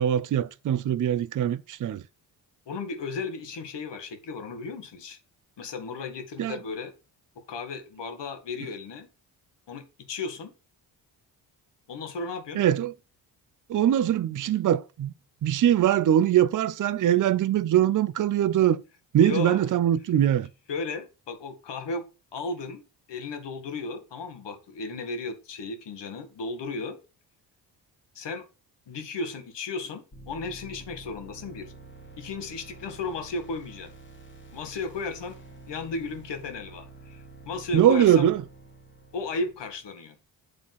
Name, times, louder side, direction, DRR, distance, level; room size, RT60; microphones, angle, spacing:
voice 1, 0.0-2.0 6.4-6.6 12.5-12.9 13.7-15.1 15.4-18.8 19.1-20.5 37.7-38.4, right 10 dB, 40° right, 0.6 m, -22 dB
voice 2, 2.7-5.2 5.6-6.9 7.3-9.1 9.7-10.5 11.9-12.6 19.2-19.6 20.7-22.0 22.3-22.8 23.1-27.0 28.1-28.4 28.9-31.7 32.2-33.9 34.5-35.4 35.7-38.3 39.1-40.2, left 3 dB, 60° left, 1.7 m, -35 dB
sound 1, 30.1-39.9, right 2 dB, 25° left, 1.9 m, -48 dB
8.2 x 3.7 x 5.7 m
supercardioid pair, 65°, 47 cm